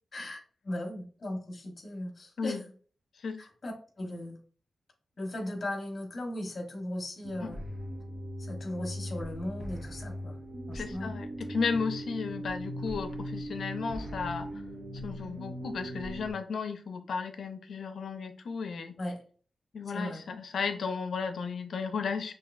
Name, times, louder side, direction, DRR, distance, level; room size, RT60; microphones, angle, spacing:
voice 1, 0.1-2.6 3.4-4.4 5.2-7.6 8.4-10.4 10.7-11.1 19.0-19.2 19.9-20.2, left 1 dB, 40° left, 2 dB, 1.1 m, -37 dB
sound 1, 7.2-16.3, equal, 35° right, 0.8 m, -39 dB
voice 2, 10.7-14.5 15.0-18.9 19.7-22.3, left 5 dB, 70° left, 8 dB, 0.5 m, -34 dB
5.6 x 2.7 x 2.5 m, 0.43 s
wide cardioid pair, 145°, 0 cm